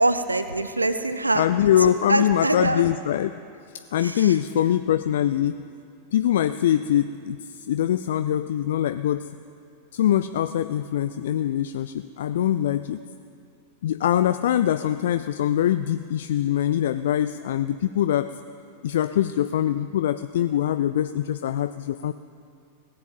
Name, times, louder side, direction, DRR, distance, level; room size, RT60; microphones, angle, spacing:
voice 1, 0.0-1.4 2.1-2.8 4.0-4.3, right 2 dB, 80° right, 10 dB, 0.6 m, -24 dB
voice 2, 1.3-3.3 3.9-5.6 6.1-9.3 9.9-13.0 13.8-18.4 18.8-22.1, left 11 dB, 60° left, 11 dB, 0.3 m, -23 dB
16.5 x 7.6 x 9.0 m, 2.4 s
figure-of-eight pair, 90°, 0 cm